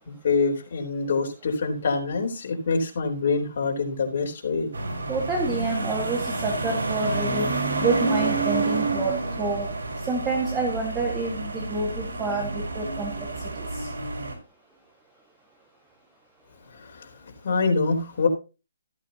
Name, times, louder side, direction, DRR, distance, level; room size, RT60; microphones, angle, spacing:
voice 1, 0.1-4.7 16.8-17.1 17.4-18.3, left 4 dB, 45° left, 1 dB, 3.9 m, -25 dB
sound 1, 4.7-14.3, right 2 dB, 75° right, 5.2 m, -29 dB
voice 2, 5.1-7.5 7.8-9.1 9.4-9.7 10.1-13.1, right 3 dB, 10° right, 1 dB, 1.8 m, -28 dB
15.0 x 8.8 x 2.9 m, 0.30 s
hypercardioid pair, 165°, 0 cm